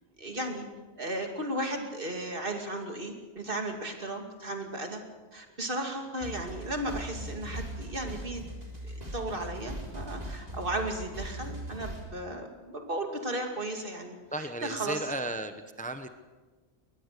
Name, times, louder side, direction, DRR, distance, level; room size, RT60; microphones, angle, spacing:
voice 1, 0.2-0.7 1.0-5.0 5.3-8.4 8.8-15.1, right 1 dB, 55° right, 3 dB, 2.7 m, -35 dB
sound 1, 6.2-12.1, right 1 dB, 40° right, 3.9 m, -40 dB
voice 2, 14.3-16.1, right 2 dB, 10° left, 8 dB, 0.9 m, -35 dB
22.0 x 20.0 x 6.8 m, 1.3 s
omnidirectional pair, 1.1 m